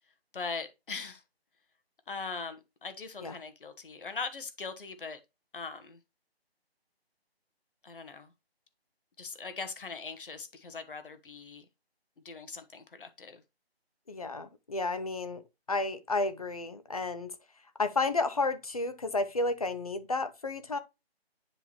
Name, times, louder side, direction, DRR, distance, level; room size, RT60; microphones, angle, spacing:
voice 1, 0.3-1.2 2.1-5.2 5.5-6.0 7.8-8.3 9.2-11.6 12.2-13.4, left 4 dB, 55° left, 1.4 m, -40 dB
voice 2, 14.1-15.4 15.7-17.3 17.8-20.8, left 3 dB, 35° left, 0.7 m, -31 dB
10.0 x 3.8 x 3.0 m
figure-of-eight pair, 170°, 32 cm